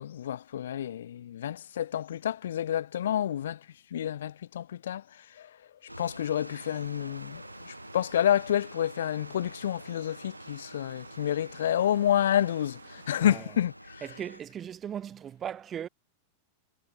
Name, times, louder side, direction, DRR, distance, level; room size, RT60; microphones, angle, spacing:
voice 1, 0.0-5.6 6.0-14.1, left 10 dB, 60° left, 0.3 m, -29 dB
sound 1, 5.9-14.4, right 1 dB, 90° right, 3.5 m, -47 dB
sound 2, 6.4-13.4, right 8 dB, 65° right, 7.1 m, -54 dB
voice 2, 14.0-15.9, right 9 dB, 25° right, 2.2 m, -38 dB
figure-of-eight pair, 90°, 0 cm